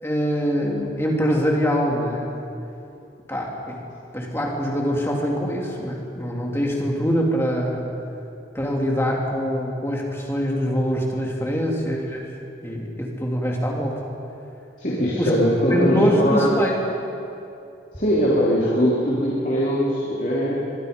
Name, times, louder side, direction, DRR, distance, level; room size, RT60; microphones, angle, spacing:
voice 1, 0.0-2.3 3.3-3.8 4.1-7.9 8.5-12.3 12.6-14.0 15.2-15.3 15.7-16.8, equal, 15° left, -1 dB, 3.1 m, -24 dB
voice 2, 14.8-16.5 18.0-20.6, equal, 45° left, -6 dB, 3.3 m, -21 dB
24.0 x 23.5 x 5.4 m, 2.7 s
head